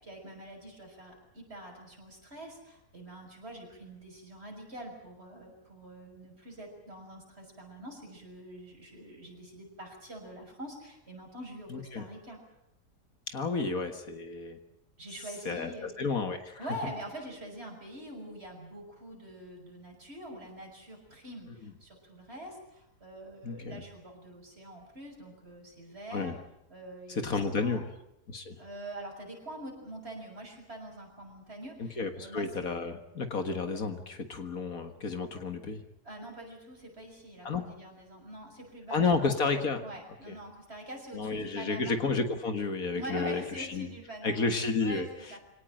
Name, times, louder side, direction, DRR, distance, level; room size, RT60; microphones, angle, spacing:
voice 1, 0.0-2.6 2.9-12.4 13.5-13.7 15.0-16.0 16.6-21.5 21.8-22.5 23.0-26.3 26.7-27.8 28.6-32.7 36.1-42.0 42.9-44.5 44.8-45.4, right 1 dB, 40° right, 1 dB, 6.6 m, -45 dB
voice 2, 11.7-12.0 13.3-14.6 15.5-15.7 16.0-16.6 23.4-23.8 26.1-26.4 27.1-27.9 28.3-28.6 31.8-35.8 37.4-37.7 38.9-39.8 40.3-40.4 41.1-43.9 44.2-45.1, left 4 dB, 60° left, 7 dB, 2.1 m, -31 dB
24.5 x 18.0 x 9.0 m, 0.81 s
omnidirectional pair, 1.7 m